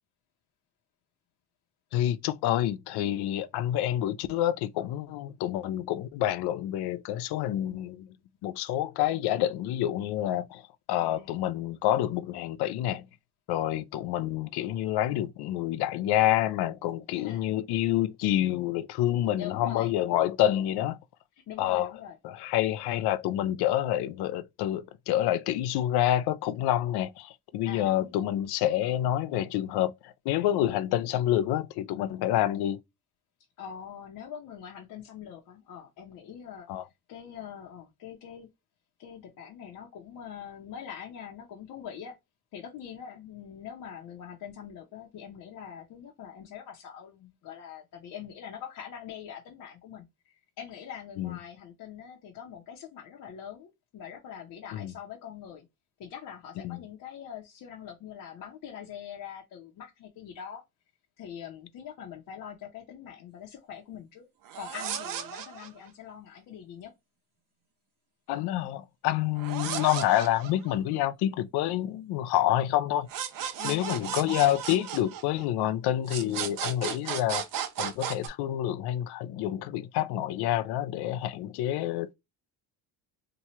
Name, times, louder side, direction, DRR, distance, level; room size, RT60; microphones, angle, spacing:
voice 1, 1.9-8.1 8.4-13.1 13.5-21.0 21.6-21.9 22.2-32.8 36.7-36.8 51.2-51.4 54.7-54.9 56.6-56.8 68.3-73.1 73.6-77.5 77.8-82.1, left 12 dB, 80° left, 0.5 m, -28 dB
voice 2, 11.0-11.4 17.1-17.5 19.2-20.0 21.5-22.2 27.6-28.1 33.6-36.7 37.1-38.5 39.0-42.2 42.5-55.7 56.0-60.6 61.2-64.3 64.5-66.9 73.6-74.3, left 8 dB, 55° left, 0.8 m, -43 dB
sound 1, 64.4-65.9 69.4-71.0 73.1-75.7 76.1-78.3, right 9 dB, 60° right, 0.8 m, -35 dB
3.0 x 2.3 x 4.2 m
cardioid pair, 165°, 38 cm